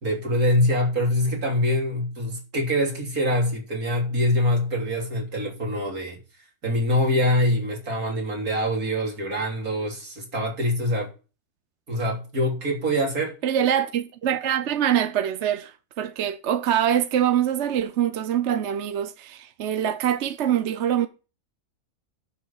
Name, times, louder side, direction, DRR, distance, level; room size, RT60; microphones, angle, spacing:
voice 1, 0.0-6.2 6.6-11.1 11.9-13.4, left 1 dB, 75° right, 3.7 m, -24 dB
voice 2, 13.4-21.1, right 10 dB, 55° right, 1.0 m, -24 dB
9.6 x 6.3 x 7.1 m
omnidirectional pair, 1.5 m